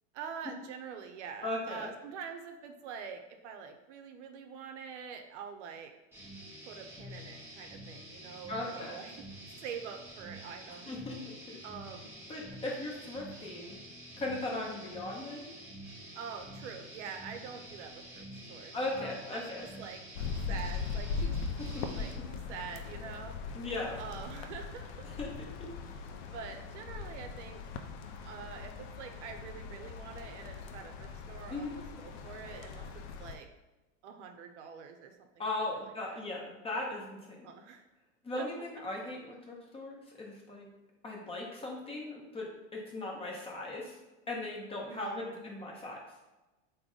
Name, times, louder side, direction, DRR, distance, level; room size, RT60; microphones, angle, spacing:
voice 1, 0.1-5.9 6.7-9.3 9.6-10.9 11.6-12.1 16.2-19.4 19.8-20.0 20.5-21.4 22.0-23.3 24.0-25.1 26.1-27.6 28.2-33.5 34.0-35.3 35.6-36.2 37.4-37.9 38.3-38.5 44.9-45.4, right 6 dB, 75° right, 5 dB, 0.6 m, -45 dB
voice 2, 1.4-1.9 8.5-9.0 10.9-11.6 12.3-13.8 14.2-15.5 18.7-19.6 21.6-22.0 23.5-24.0 25.2-25.3 25.6-25.7 31.5-31.8 35.4-37.5 38.2-40.7 41.0-44.0 44.3-46.0, left 2 dB, 15° left, -1 dB, 0.7 m, -38 dB
sound 1, 6.1-22.1, equal, 5° right, 1.0 m, -48 dB
sound 2, 20.2-33.4, left 5 dB, 55° left, 0.5 m, -40 dB
3.4 x 2.1 x 3.8 m, 1.1 s
hypercardioid pair, 110°, 36 cm